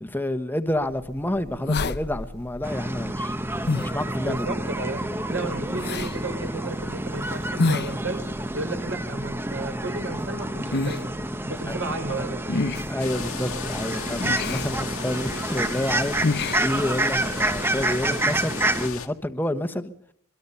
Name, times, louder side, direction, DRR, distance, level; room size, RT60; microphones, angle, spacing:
voice 1, 0.0-3.4 3.8-4.6 11.7-11.8 12.9-19.9, left 1 dB, 10° left, 1.2 m, -29 dB
sound 1, 0.8-17.4, left 3 dB, 50° left, 0.8 m, -32 dB
sound 2, 2.6-18.9, right 1 dB, 10° right, 0.9 m, -29 dB
voice 2, 4.2-5.0 5.3-8.2 8.5-11.2 11.4-12.4, right 2 dB, 60° right, 5.6 m, -32 dB
sound 3, 13.0-19.1, left 7 dB, 85° left, 1.8 m, -36 dB
23.5 x 23.0 x 5.6 m
head